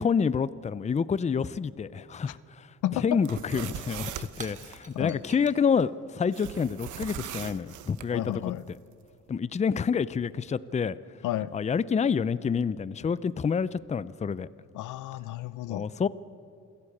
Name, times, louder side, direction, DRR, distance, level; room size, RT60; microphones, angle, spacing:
voice 1, 0.0-2.7 3.0-8.3 9.3-10.9 11.5-14.5 15.7-16.1, left 6 dB, 25° left, 17 dB, 0.5 m, -28 dB
voice 2, 2.8-3.2 4.9-5.2 8.1-8.6 11.2-11.5 14.7-15.9, left 13 dB, 80° left, 17 dB, 0.7 m, -32 dB
sound 1, 3.1-4.8 6.3-8.1, right 11 dB, 80° right, 0.9 m, -40 dB
Shatter / Crushing, 3.9-8.2, right 3 dB, 25° right, 1.6 m, -52 dB
28.0 x 11.5 x 8.6 m, 2.3 s
cardioid pair, 90°, 30 cm